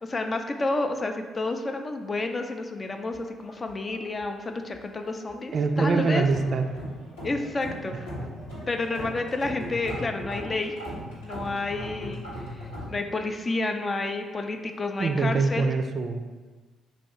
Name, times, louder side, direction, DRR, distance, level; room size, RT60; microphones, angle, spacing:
voice 1, 0.0-6.3 7.2-8.1 8.7-10.7 11.2-12.2 12.9-15.7, left 2 dB, 35° left, 5 dB, 0.4 m, -30 dB
sound 1, 3.1-4.4 4.6-5.4 5.8-12.9, equal, 90° left, 1.0 m, -39 dB
voice 2, 5.5-6.6 15.0-16.2, right 4 dB, 50° right, 6 dB, 0.3 m, -24 dB
3.4 x 2.3 x 4.3 m, 1.3 s
hypercardioid pair, 45°, 0 cm